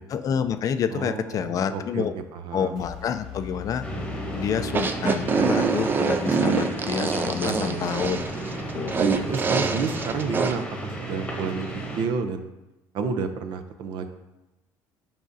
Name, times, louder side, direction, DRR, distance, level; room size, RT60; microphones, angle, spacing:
voice 1, 0.1-2.1 2.5-3.8 4.3-8.2 8.7-8.9, left 7 dB, 45° left, 10 dB, 0.4 m, -28 dB
voice 2, 0.9-2.7 7.7-8.1 9.0-11.7 12.0-12.5 12.9-14.1, right 5 dB, 65° right, 8 dB, 0.6 m, -30 dB
sound 1, 2.8-5.7, left 10 dB, 5° right, 1.3 m, -40 dB
sound 2, 3.8-12.1, right 1 dB, 10° left, 1.0 m, -33 dB
sound 3, 4.7-10.5, right 5 dB, 25° right, 0.4 m, -25 dB
7.4 x 5.0 x 2.7 m, 1.0 s
cardioid pair, 125°, 8 cm